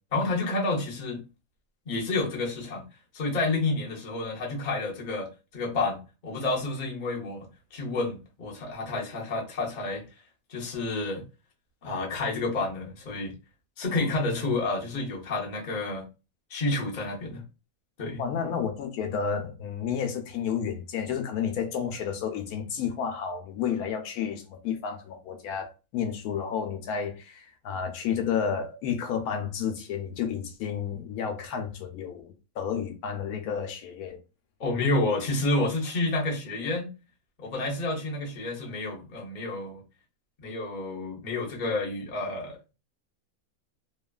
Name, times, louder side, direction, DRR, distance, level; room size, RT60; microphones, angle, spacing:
voice 1, 0.1-1.2 1.9-2.8 3.1-10.1 10.5-11.2 11.8-13.3 13.8-16.1 16.5-17.4 18.0-18.2 34.6-36.9 37.4-39.8 40.4-42.6, left 2 dB, 40° left, 0.8 m, -29 dB
voice 2, 18.2-34.2, left 7 dB, 90° left, 1.1 m, -31 dB
3.0 x 2.3 x 2.3 m
omnidirectional pair, 1.5 m